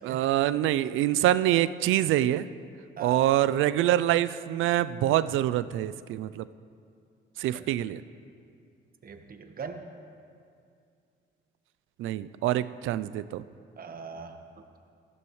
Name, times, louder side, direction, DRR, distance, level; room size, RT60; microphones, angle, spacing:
voice 1, 0.0-2.5 3.0-6.5 7.4-8.0 12.0-13.4, right 13 dB, 85° right, 15 dB, 0.4 m, -25 dB
voice 2, 9.0-9.9 13.8-14.4, right 5 dB, 45° right, 6 dB, 1.3 m, -41 dB
19.5 x 15.0 x 3.2 m, 2.3 s
cardioid pair, 90°, 20 cm